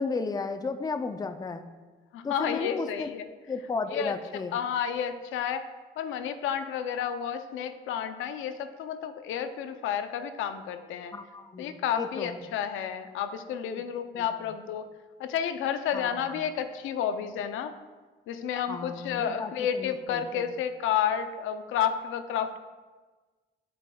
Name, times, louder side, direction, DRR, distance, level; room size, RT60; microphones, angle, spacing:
voice 1, 0.0-1.7 2.2-3.1 3.5-4.5 11.1-12.4 13.7-13.8 14.1-14.3 15.9-16.3 18.7-20.5, left 4 dB, 20° left, 9 dB, 0.4 m, -34 dB
voice 2, 2.1-3.3 3.9-4.1 4.5-5.6 6.0-11.1 11.6-14.9 15.2-17.7 18.3-22.6, left 8 dB, 90° left, 9 dB, 0.5 m, -31 dB
7.6 x 7.6 x 2.3 m, 1.3 s
cardioid pair, 90°, 20 cm